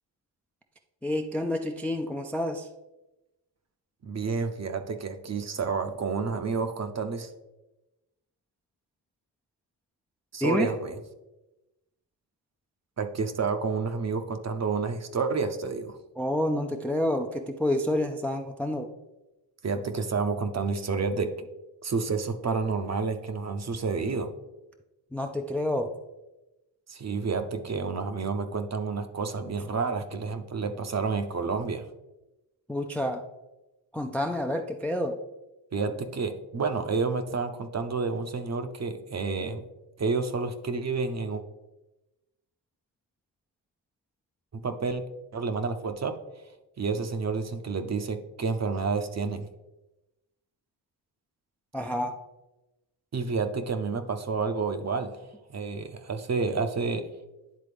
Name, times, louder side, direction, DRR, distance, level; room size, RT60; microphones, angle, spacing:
voice 1, 1.0-2.7 10.4-10.7 16.2-18.9 25.1-26.0 32.7-33.3 33.9-35.2 51.7-52.2, left 1 dB, 5° left, 4 dB, 0.4 m, -28 dB
voice 2, 4.0-7.3 10.3-11.0 13.0-16.0 19.6-21.5 21.8-24.3 26.9-31.8 35.7-39.6 40.0-41.4 44.5-45.0 45.3-46.2 46.8-49.5 53.1-55.1 55.5-57.0, right 4 dB, 35° right, 8 dB, 0.7 m, -29 dB
10.5 x 3.7 x 3.5 m, 1.0 s
cardioid pair, 75°, 46 cm